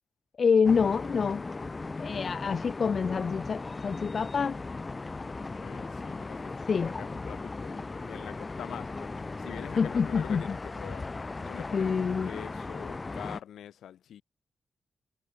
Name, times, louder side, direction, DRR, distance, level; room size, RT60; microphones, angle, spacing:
voice 1, 0.4-1.4 2.0-4.6 6.7-7.0 9.8-10.4 11.7-12.3, left 5 dB, 55° left, 0.8 m, -26 dB
sound 1, 0.6-13.4, left 3 dB, 30° left, 2.2 m, -37 dB
voice 2, 5.6-11.1 11.4-14.2, left 10 dB, 85° left, 1.7 m, -45 dB
cardioid pair, 75°, 0 cm